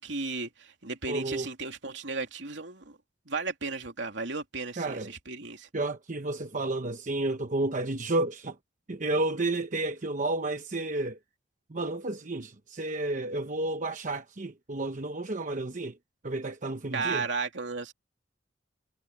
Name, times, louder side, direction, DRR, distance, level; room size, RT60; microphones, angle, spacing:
voice 1, 0.0-3.0 3.3-5.7 16.9-17.9, right 4 dB, 75° right, 3.0 m, -34 dB
voice 2, 1.1-1.5 4.8-5.1 5.7-8.6 8.9-11.2 11.7-16.0 16.2-17.3, right 2 dB, 45° right, 1.0 m, -31 dB
head